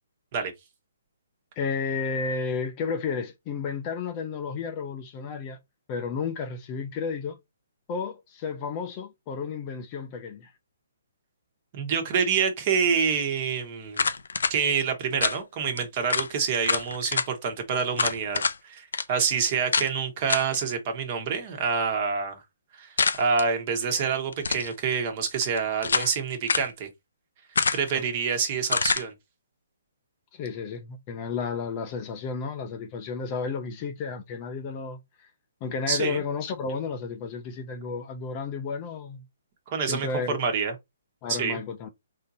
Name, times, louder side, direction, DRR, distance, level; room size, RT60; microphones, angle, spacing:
voice 1, 1.6-5.6 5.9-7.4 7.9-10.5 27.9-28.0 30.3-35.3 35.6-39.2 39.9-40.4 41.2-41.9, left 5 dB, 25° left, 0.6 m, -32 dB
voice 2, 11.7-14.0 14.5-22.4 22.7-26.9 27.7-29.1 35.9-36.2 39.7-40.7 41.3-41.6, right 6 dB, 35° right, 1.2 m, -27 dB
sound 1, 13.9-14.5 15.2-15.4 15.8-15.9 16.1-16.3 16.6-17.3 18.0-18.6 18.9-19.1 19.7-19.9 20.3-20.6 23.0-23.5 24.3-24.7 25.4-26.1 26.5-26.7 27.6-28.0 28.7-29.1, left 4 dB, 85° left, 0.5 m, -26 dB
3.7 x 2.7 x 4.0 m
hypercardioid pair, 155°, 0 cm